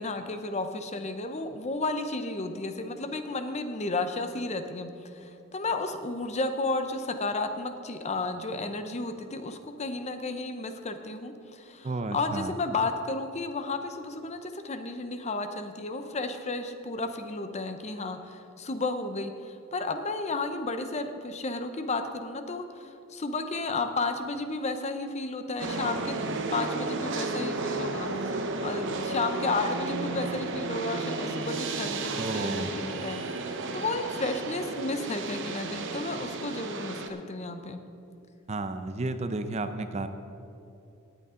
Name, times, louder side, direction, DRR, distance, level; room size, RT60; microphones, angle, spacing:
voice 1, 0.0-26.3 26.5-37.8, left 3 dB, 30° left, 8 dB, 0.7 m, -33 dB
voice 2, 11.8-12.5 32.2-32.7 38.5-40.1, right 2 dB, 30° right, 9 dB, 0.5 m, -32 dB
sound 1, 25.6-37.1, right 3 dB, 60° right, 0.9 m, -33 dB
18.0 x 8.2 x 3.8 m, 2.8 s
head